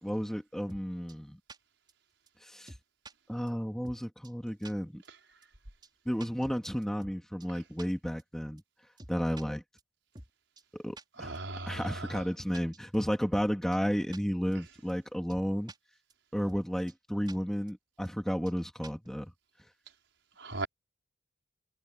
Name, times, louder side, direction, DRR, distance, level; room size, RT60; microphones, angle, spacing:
voice 1, 0.0-1.4 2.4-2.7 3.3-5.0 6.1-8.6 9.1-9.6 10.7-15.7 16.3-19.3, equal, 5° left, 2.4 m, -33 dB
sound 1, 0.7-0.8 1.1-1.2 1.5-1.6 1.9-2.0 2.3-2.4 2.7-3.1 3.5-3.6 3.8-4.0 4.2-4.3 4.6-4.7 5.0-5.1 5.4-5.5 5.8-5.9 6.2-7.2 7.4-7.5 7.8-7.9 8.2-8.3 8.6-8.7 9.0-9.4 9.8-9.9 10.1-10.3 10.6-10.7 11.0-11.1 11.3-11.4 11.8-11.9 12.1-12.3 12.5-13.5 13.7-13.8 14.1-14.2 14.5-14.6 14.9-15.0 15.3-15.8 16.1-16.2 16.5-16.6 16.9-17.0 17.3-17.4 17.7-17.8 18.0-18.1 18.5-18.6 18.8-19.1, right 2 dB, 20° right, 5.5 m, -49 dB
voice 2, 11.2-12.1 20.4-20.7, right 2 dB, 70° right, 5.4 m, -37 dB
head